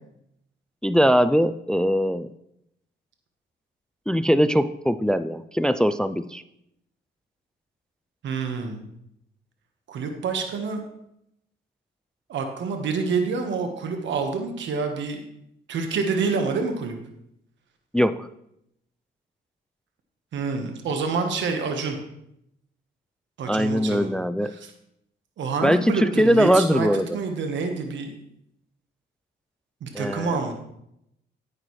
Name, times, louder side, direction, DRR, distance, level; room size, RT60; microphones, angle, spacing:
voice 1, 0.8-2.3 4.1-6.4 17.9-18.3 23.5-24.5 25.6-27.2 29.9-30.5, equal, 5° left, 14 dB, 0.3 m, -21 dB
voice 2, 8.2-8.8 9.9-10.8 12.3-15.2 15.7-17.0 20.3-22.0 23.4-24.1 24.5-24.7 25.4-26.9 27.1-28.2 29.8-30.5, right 4 dB, 70° right, 5 dB, 1.3 m, -27 dB
9.9 x 9.2 x 3.2 m, 0.78 s
cardioid pair, 90°, 20 cm